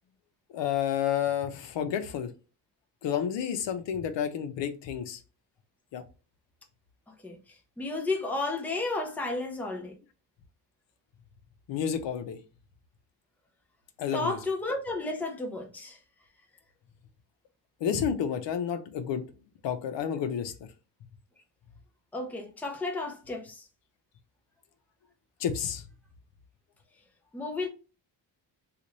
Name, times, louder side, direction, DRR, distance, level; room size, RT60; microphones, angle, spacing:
voice 1, 0.5-2.3 3.0-5.2 5.9-6.0 11.7-12.4 14.0-14.4 17.8-19.2 19.6-20.5 25.4-25.8, left 8 dB, 85° left, 0.7 m, -30 dB
voice 2, 7.8-9.9 14.1-16.0 22.1-23.7 27.3-27.7, left 2 dB, 5° left, 0.5 m, -32 dB
3.9 x 2.5 x 3.0 m
wide cardioid pair, 175°, 43 cm